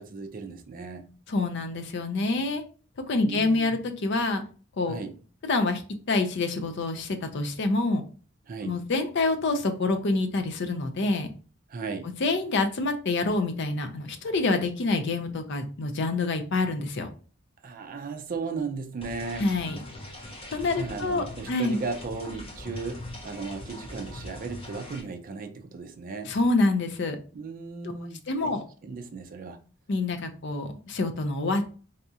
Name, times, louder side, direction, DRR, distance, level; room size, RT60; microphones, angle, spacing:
voice 1, 0.0-1.1 3.2-3.8 4.9-5.2 8.5-8.8 11.7-12.1 17.6-19.5 20.7-26.3 27.3-29.6, right 4 dB, 40° right, 0.4 m, -36 dB
voice 2, 1.3-2.6 3.1-4.4 4.8-5.0 5.4-5.8 6.1-8.0 8.6-11.3 12.2-17.1 19.4-19.8 20.5-21.8 26.3-27.2 28.3-28.6 29.9-31.7, left 3 dB, 55° left, 0.5 m, -26 dB
sound 1, 19.0-25.0, left 1 dB, 30° left, 0.8 m, -41 dB
4.1 x 2.3 x 2.7 m
head